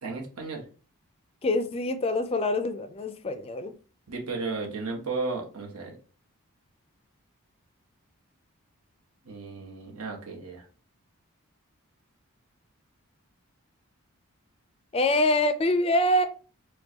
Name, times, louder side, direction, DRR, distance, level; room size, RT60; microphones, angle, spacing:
voice 1, 0.0-0.7 4.1-6.0 9.2-10.7, right 3 dB, 85° right, 1 dB, 1.0 m, -34 dB
voice 2, 1.4-3.7 14.9-16.2, left 1 dB, 25° left, 9 dB, 0.3 m, -25 dB
4.5 x 2.2 x 2.8 m, 0.36 s
head